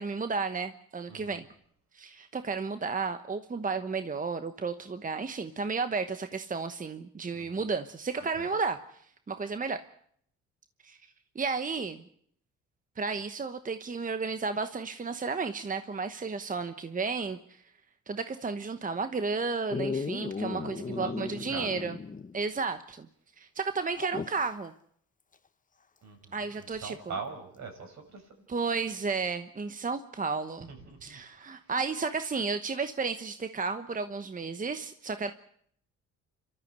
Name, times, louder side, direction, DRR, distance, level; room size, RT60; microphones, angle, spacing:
voice 1, 0.0-1.4 1.9-8.8 9.3-9.8 10.8-11.0 11.3-12.0 13.0-17.6 18.1-22.0 22.3-23.1 23.4-24.7 26.3-27.1 28.5-30.7 31.0-35.3, right 4 dB, 25° right, 9 dB, 1.1 m, -33 dB
voice 2, 1.1-1.4 7.3-7.6 8.4-8.5 20.5-21.8 26.0-28.2 30.7-31.2, right 5 dB, 65° right, 4 dB, 6.5 m, -42 dB
Dog, 19.7-22.4 22.7-22.8 23.9-24.5 26.6-26.7, left 5 dB, 25° left, 1.0 m, -36 dB
28.0 x 13.5 x 8.2 m, 0.66 s
cardioid pair, 90°, 30 cm